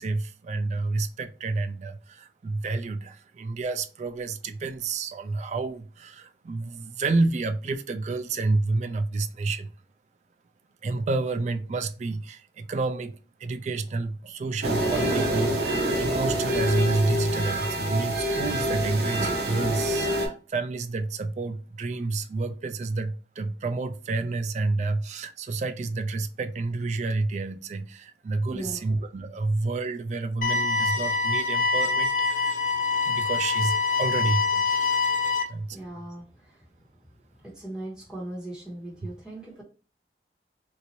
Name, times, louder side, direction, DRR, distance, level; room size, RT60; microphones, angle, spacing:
voice 1, 0.0-9.7 10.8-32.6 33.0-35.0 35.5-35.8, right 3 dB, 40° right, 0.3 m, -29 dB
sound 1, 14.6-20.3, right 1 dB, 65° right, 0.8 m, -26 dB
voice 2, 28.5-28.9 32.7-33.2 35.7-36.7 37.4-39.6, right 1 dB, 5° right, 1.3 m, -39 dB
sound 2, 30.4-35.4, left 4 dB, 45° left, 0.5 m, -25 dB
2.7 x 2.5 x 2.9 m
head